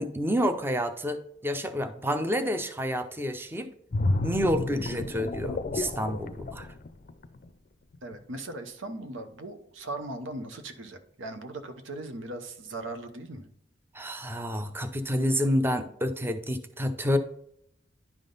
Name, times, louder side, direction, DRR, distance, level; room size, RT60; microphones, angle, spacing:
voice 1, 0.0-3.7 4.2-6.7 13.9-17.2, equal, 10° right, 8 dB, 0.5 m, -29 dB
sound 1, 3.9-7.5 7.9-8.1, left 2 dB, 45° left, 0.4 m, -31 dB
voice 2, 8.0-13.5, right 2 dB, 90° right, 8 dB, 0.9 m, -39 dB
10.5 x 3.7 x 3.9 m, 0.70 s
head